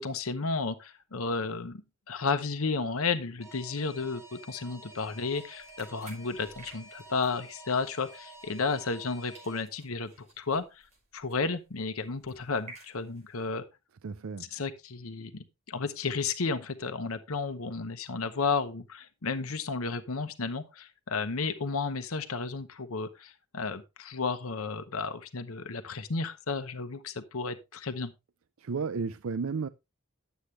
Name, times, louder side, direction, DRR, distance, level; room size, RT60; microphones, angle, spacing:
voice 1, 0.0-1.8 2.1-10.9 11.1-13.6 14.5-28.1, left 4 dB, 90° left, 0.9 m, -33 dB
Alarm, 3.4-9.6, right 2 dB, 15° right, 3.7 m, -50 dB
sound 1, 4.9-9.1 9.3-13.4, right 2 dB, 35° right, 5.5 m, -55 dB
voice 2, 14.0-14.5 28.6-29.7, right 5 dB, 70° right, 0.5 m, -33 dB
11.5 x 8.1 x 3.3 m
head